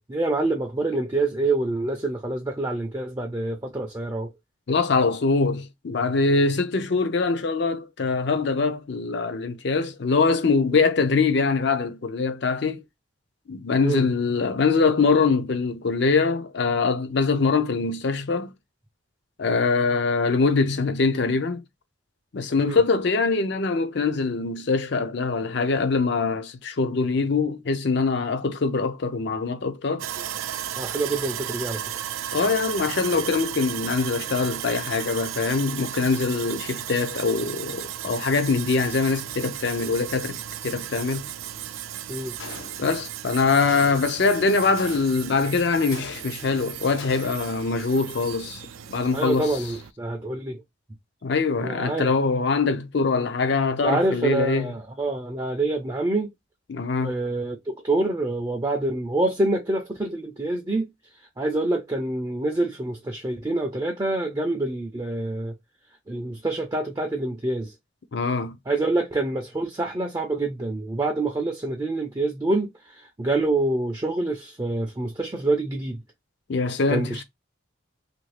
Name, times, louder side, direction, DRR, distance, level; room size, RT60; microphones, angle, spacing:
voice 1, 0.1-4.3 13.8-14.1 22.6-22.8 30.7-31.8 42.1-42.4 49.1-50.6 51.6-52.1 53.8-56.3 57.0-60.9 61.4-65.5 66.1-67.7 68.7-76.0 76.9-77.2, right 2 dB, 20° right, 0.4 m, -26 dB
voice 2, 4.7-12.8 13.5-18.5 19.4-21.6 22.3-30.1 32.3-41.3 42.8-48.6 48.9-49.5 51.2-54.7 56.7-57.1 68.1-68.6 76.5-77.2, left 4 dB, 55° left, 0.5 m, -23 dB
Sawing, 30.0-49.9, right 11 dB, 85° right, 0.4 m, -35 dB
Gunshot gunfire, 42.4-43.1 43.7-44.2 44.8-45.4 45.9-46.6 47.0-47.6, left 4 dB, 85° left, 0.8 m, -41 dB
3.1 x 2.6 x 3.2 m
head